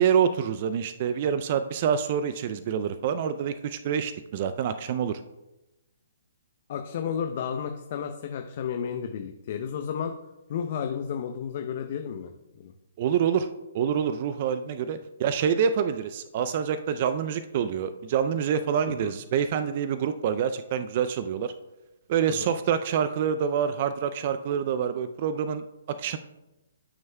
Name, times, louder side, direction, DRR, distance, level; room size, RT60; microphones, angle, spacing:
voice 1, 0.0-5.2 13.0-13.5 13.7-21.5 22.1-26.2, right 8 dB, 45° right, 11 dB, 0.4 m, -26 dB
voice 2, 6.7-10.1 10.5-12.3 12.6-12.7 18.9-19.1 22.3-22.5, left 7 dB, 50° left, 5 dB, 0.7 m, -32 dB
13.5 x 6.3 x 2.3 m, 0.99 s
figure-of-eight pair, 130°, 0 cm